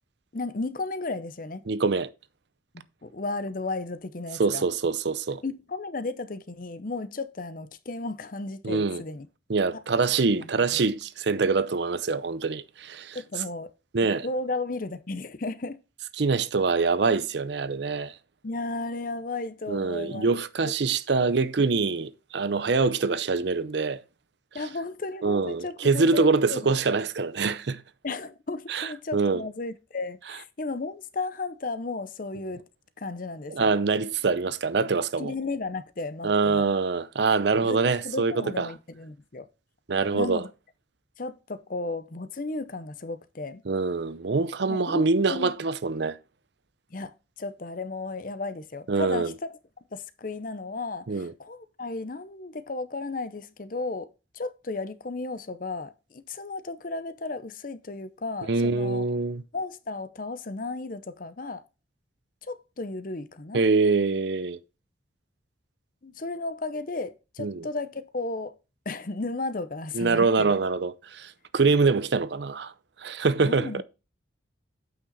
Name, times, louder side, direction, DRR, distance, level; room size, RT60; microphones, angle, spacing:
voice 1, 0.3-1.6 2.7-4.6 5.4-9.3 10.3-10.7 13.1-13.7 14.2-15.8 18.4-20.3 20.6-20.7 21.2-21.3 24.5-26.7 28.0-32.6 33.0-33.7 35.2-36.6 37.6-39.5 40.1-40.5 41.2-43.6 44.7-45.5 46.9-49.3 49.9-54.1 54.3-59.0 59.5-61.6 62.4-63.6 66.0-68.5 68.9-70.5 73.4-73.8, left 3 dB, 45° left, 0.7 m, -34 dB
voice 2, 1.7-2.1 4.4-5.4 8.6-9.0 9.5-13.2 13.9-14.3 16.2-18.1 19.7-24.0 25.2-27.8 28.7-29.4 33.5-35.3 36.2-38.7 39.9-40.4 43.7-46.2 48.9-49.3 51.1-51.3 58.5-59.4 63.5-64.6 67.4-67.7 69.9-72.7 73.0-73.8, right 4 dB, 60° right, 0.6 m, -24 dB
8.5 x 5.9 x 4.0 m
head